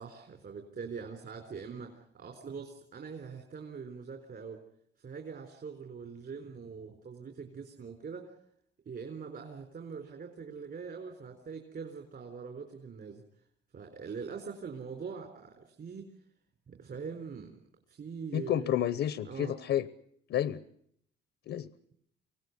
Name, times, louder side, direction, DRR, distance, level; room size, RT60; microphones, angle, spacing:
voice 1, 0.0-4.6 5.0-8.3 8.9-13.2 13.7-16.1 16.7-17.6 17.9-18.8 19.2-19.5, right 5 dB, 55° right, 4 dB, 4.1 m, -43 dB
voice 2, 18.3-19.9 20.3-20.6 21.5-21.7, left 11 dB, 75° left, 15 dB, 1.0 m, -30 dB
25.0 x 17.5 x 9.5 m, 0.71 s
cardioid pair, 90°, 20 cm